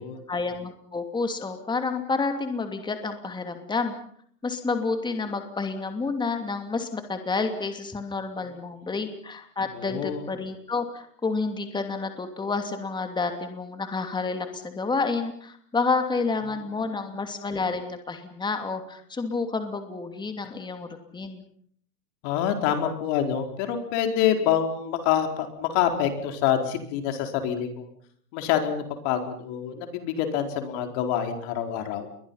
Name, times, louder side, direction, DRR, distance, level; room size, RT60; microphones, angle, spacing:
voice 1, 0.3-3.9 4.4-20.9 21.1-21.4, left 4 dB, 10° left, 6 dB, 2.7 m, -29 dB
voice 2, 9.7-10.2 22.2-27.8 28.3-32.1, left 9 dB, 45° left, 5 dB, 4.7 m, -26 dB
29.5 x 23.0 x 5.7 m, 0.62 s
hypercardioid pair, 130°, 47 cm